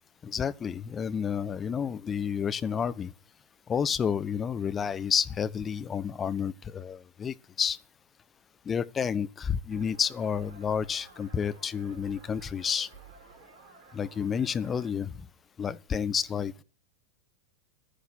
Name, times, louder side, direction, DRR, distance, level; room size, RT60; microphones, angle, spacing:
voice 1, 0.2-3.1 3.7-7.8 8.7-12.9 13.9-15.3 15.6-16.6, left 7 dB, 20° left, 0.7 m, -30 dB
sound 1, 9.7-14.9, right 5 dB, 40° right, 4.6 m, -52 dB
10.5 x 10.0 x 8.9 m
figure-of-eight pair, 90°, 0 cm